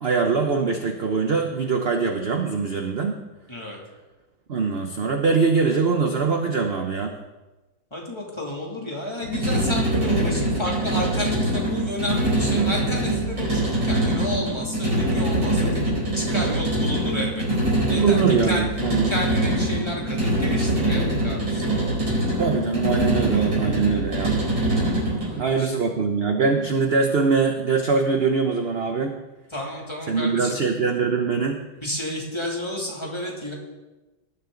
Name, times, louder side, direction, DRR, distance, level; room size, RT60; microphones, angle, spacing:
voice 1, 0.0-3.2 4.5-7.1 18.0-19.1 22.4-24.4 25.4-29.2 30.1-31.6, right 4 dB, 45° right, 4 dB, 0.9 m, -23 dB
voice 2, 3.5-3.8 7.9-18.7 19.1-21.8 25.2-25.7 29.5-30.6 31.8-33.5, left 1 dB, 15° left, -2 dB, 2.7 m, -31 dB
sound 1, 9.2-25.4, right 1 dB, 90° right, 5.3 m, -23 dB
19.0 x 11.0 x 3.9 m, 1.1 s
omnidirectional pair, 1.9 m